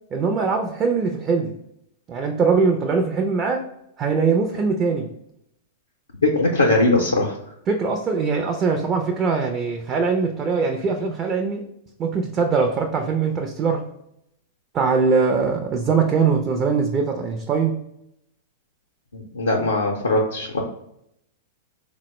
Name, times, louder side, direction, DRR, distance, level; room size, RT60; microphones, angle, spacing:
voice 1, 0.1-1.5 2.1-3.7 4.0-5.1 7.7-11.7 12.0-13.8 14.7-17.8, right 5 dB, 30° right, 2 dB, 0.4 m, -22 dB
voice 2, 6.2-7.3 19.1-20.6, left 2 dB, 85° left, -2 dB, 0.5 m, -20 dB
3.9 x 2.0 x 3.0 m, 0.78 s
figure-of-eight pair, 100°, 0 cm